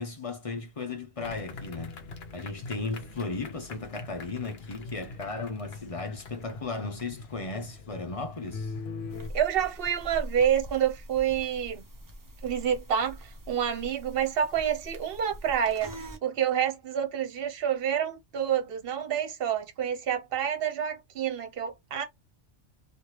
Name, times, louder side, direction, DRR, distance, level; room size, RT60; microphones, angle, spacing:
voice 1, 0.0-2.0 2.3-8.7, left 3 dB, 40° left, 0.5 m, -36 dB
sound 1, 1.2-9.3, left 4 dB, 60° left, 0.9 m, -42 dB
sound 2, 9.1-16.2, equal, 20° right, 0.5 m, -43 dB
voice 2, 9.3-11.8 12.4-15.9 16.2-22.0, right 9 dB, 55° right, 1.0 m, -28 dB
3.2 x 2.5 x 2.9 m
omnidirectional pair, 1.3 m